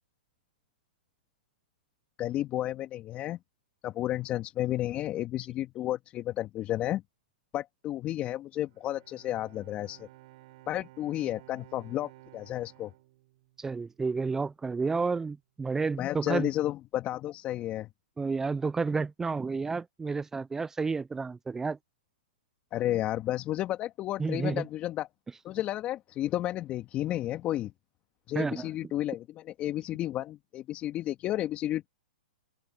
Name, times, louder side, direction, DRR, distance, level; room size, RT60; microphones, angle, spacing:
voice 1, 2.2-3.4 3.8-7.0 7.5-10.1 10.7-12.9 16.0-17.9 22.7-25.1 25.4-27.7 28.3-31.9, left 13 dB, 25° left, 2.3 m, -32 dB
Bowed string instrument, 8.6-14.1, right 18 dB, 50° right, 6.0 m, -55 dB
voice 2, 13.6-16.5 18.2-21.8 24.2-24.7 28.3-28.7, right 4 dB, 10° right, 0.4 m, -31 dB
open air
hypercardioid pair, 130°, 5 cm